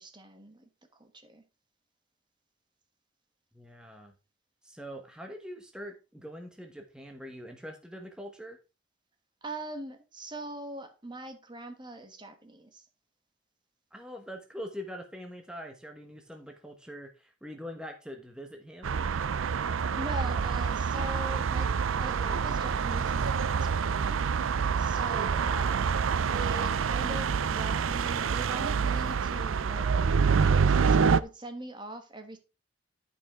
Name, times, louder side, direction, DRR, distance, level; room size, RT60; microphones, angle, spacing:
voice 1, 0.0-1.4 9.4-12.9 20.0-24.3 24.8-26.0 26.3-32.4, right 1 dB, 25° right, 1.2 m, -42 dB
voice 2, 3.5-4.1 4.6-8.6 13.9-19.0, equal, 5° right, 1.1 m, -43 dB
sound 1, 18.8-31.2, right 6 dB, 90° right, 0.5 m, -27 dB
12.0 x 5.5 x 3.6 m
head